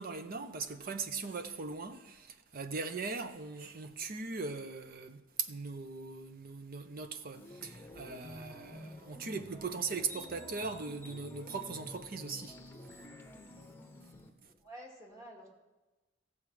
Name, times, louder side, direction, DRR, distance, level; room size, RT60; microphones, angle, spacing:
voice 1, 0.0-12.6 14.4-14.5, right 4 dB, 50° right, 0.7 m, -40 dB
sound 1, 7.3-14.3, left 1 dB, 10° left, 1.0 m, -50 dB
voice 2, 14.4-15.5, equal, 15° right, 2.4 m, -50 dB
15.5 x 7.1 x 4.9 m
head